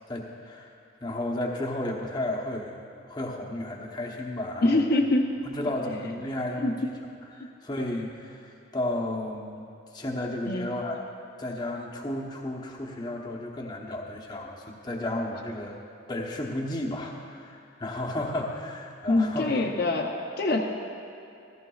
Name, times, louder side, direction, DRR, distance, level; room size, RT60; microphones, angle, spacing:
voice 1, 0.1-0.7 1.0-4.9 5.4-6.9 7.3-9.6 9.9-11.0 11.4-15.7 16.1-19.5, left 1 dB, 20° left, -2 dB, 0.9 m, -33 dB
voice 2, 4.6-5.4 6.6-6.8 7.4-7.5 10.5-10.7 19.1-20.6, left 2 dB, 50° left, 0 dB, 0.6 m, -24 dB
14.5 x 14.5 x 2.4 m, 2.7 s
head